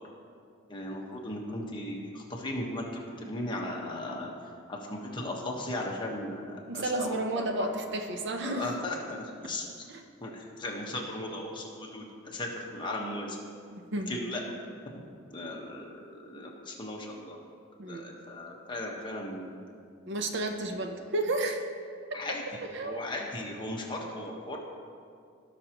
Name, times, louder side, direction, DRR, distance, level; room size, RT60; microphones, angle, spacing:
voice 1, 0.7-4.3 4.7-7.7 8.4-9.7 10.2-13.4 14.1-14.4 15.3-17.4 17.9-19.6 22.1-24.6, left 1 dB, 25° left, -1 dB, 1.2 m, -37 dB
voice 2, 6.7-8.7 9.9-10.0 13.7-14.2 17.8-18.0 20.0-21.6 22.7-23.0, right 2 dB, 60° right, 5 dB, 0.8 m, -32 dB
17.0 x 6.0 x 3.0 m, 2.3 s
head